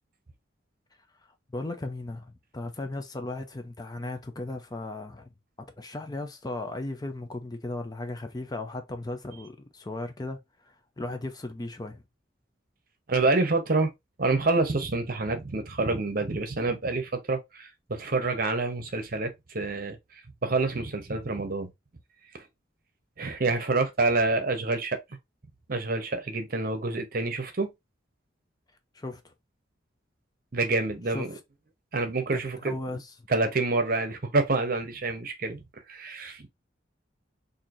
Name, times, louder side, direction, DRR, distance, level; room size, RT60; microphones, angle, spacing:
voice 1, 1.5-5.3 5.6-12.0 28.9-29.3 31.1-31.4 32.3-33.1, left 2 dB, 20° left, 0.4 m, -36 dB
voice 2, 13.1-13.9 14.2-20.0 20.4-21.7 22.3-22.4 23.2-25.0 25.7-27.7 30.5-31.3 31.9-32.7 33.3-35.6 35.9-36.5, right 3 dB, 50° right, 0.8 m, -27 dB
4.3 x 2.6 x 2.5 m
head